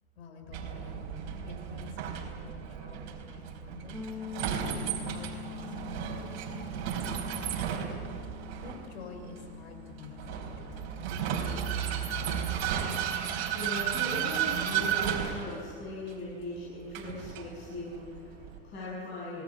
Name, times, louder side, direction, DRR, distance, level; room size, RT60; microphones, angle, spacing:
voice 1, 0.2-4.0 4.6-7.9 8.6-11.5, left 5 dB, 85° left, 4 dB, 6.2 m, -48 dB
Vehicle, 0.5-18.6, right 8 dB, 55° right, 4.2 m, -34 dB
sound 1, 3.9-13.6, left 10 dB, 5° left, 1.5 m, -46 dB
voice 2, 13.0-19.4, left 1 dB, 35° left, -7 dB, 8.0 m, -39 dB
26.0 x 20.0 x 7.5 m, 2.3 s
supercardioid pair, 140°, 32 cm